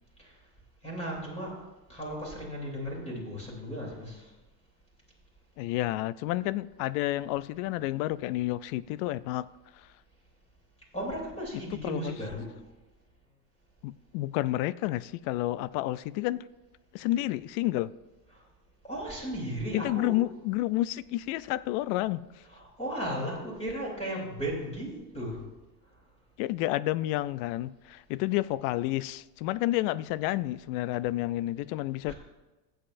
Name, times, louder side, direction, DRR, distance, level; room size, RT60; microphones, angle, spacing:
voice 1, 0.8-1.6 1.9-4.3 10.9-12.5 18.8-20.2 22.5-25.4 32.1-32.2, right 1 dB, 15° left, -3 dB, 3.2 m, -35 dB
voice 2, 5.6-9.5 11.7-12.2 13.8-16.5 16.9-17.9 19.7-22.2 26.4-32.1, left 16 dB, 55° left, 19 dB, 0.5 m, -30 dB
15.5 x 7.9 x 2.6 m, 1.1 s
supercardioid pair, 110°, 49 cm